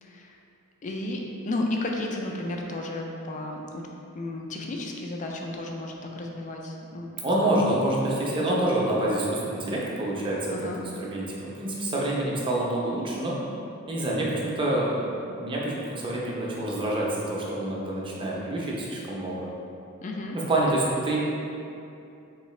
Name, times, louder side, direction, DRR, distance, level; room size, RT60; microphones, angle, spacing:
voice 1, 0.0-0.3 0.8-3.9 4.1-7.6 8.4-8.5 10.5-10.8 20.0-20.4, left 2 dB, 35° left, 1 dB, 0.4 m, -33 dB
voice 2, 7.2-10.4 11.0-13.4 13.9-14.9 15.3-19.5 20.5-21.2, right 1 dB, 20° right, -4 dB, 0.5 m, -27 dB
3.7 x 3.1 x 3.1 m, 2.6 s
head